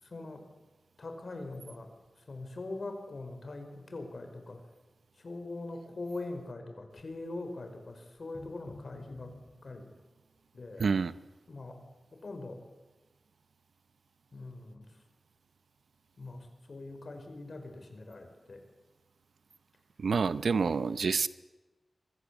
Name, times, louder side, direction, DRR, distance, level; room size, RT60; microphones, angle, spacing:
voice 1, 0.0-0.5 1.0-1.9 2.2-4.6 5.1-9.3 9.6-9.9 10.5-10.9 11.5-11.8 12.1-12.6 14.3-15.0 16.2-18.6, left 2 dB, 55° left, 6 dB, 5.3 m, -42 dB
sound 1, 2.1-2.2 7.0-7.4 8.2-9.8, left 2 dB, 30° left, 4.5 m, -51 dB
voice 2, 10.8-11.1 20.0-21.3, right 5 dB, 90° right, 15 dB, 0.8 m, -28 dB
27.0 x 23.5 x 8.4 m, 1.1 s
wide cardioid pair, 105°, 0 cm